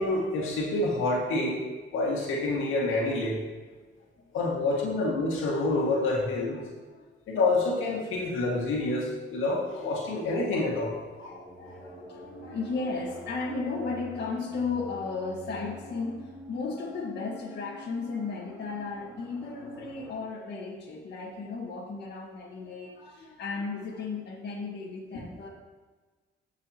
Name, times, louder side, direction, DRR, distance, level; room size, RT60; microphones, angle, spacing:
voice 1, 0.0-1.6 1.9-3.4 4.3-6.6 7.3-11.4 25.1-25.2, left 2 dB, 85° left, -2 dB, 2.0 m, -28 dB
voice 2, 4.2-4.6 6.5-7.0 11.6-25.5, left 4 dB, 60° left, -2 dB, 1.7 m, -35 dB
sound 1, 10.9-20.2, equal, 10° right, 1.5 m, -47 dB
16.0 x 6.1 x 3.0 m, 1.3 s
cardioid pair, 90°, 20 cm